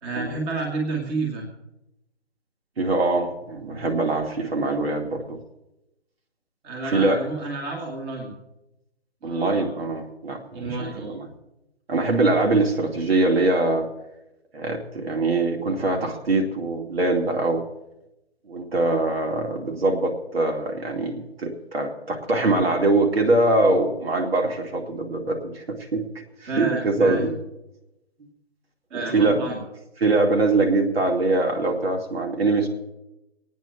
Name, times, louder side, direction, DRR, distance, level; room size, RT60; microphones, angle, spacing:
voice 1, 0.0-1.5 3.6-3.8 6.6-8.4 9.2-9.7 10.5-11.2 26.5-27.3 28.9-29.6, right 3 dB, 15° right, 0 dB, 1.9 m, -30 dB
voice 2, 2.8-5.4 6.8-7.2 9.2-11.3 11.9-13.9 14.5-17.6 18.5-26.0 26.4-27.3 28.9-29.4 30.0-32.7, right 2 dB, 60° right, 2 dB, 2.4 m, -23 dB
26.0 x 9.3 x 3.4 m, 0.92 s
hypercardioid pair, 155°, 33 cm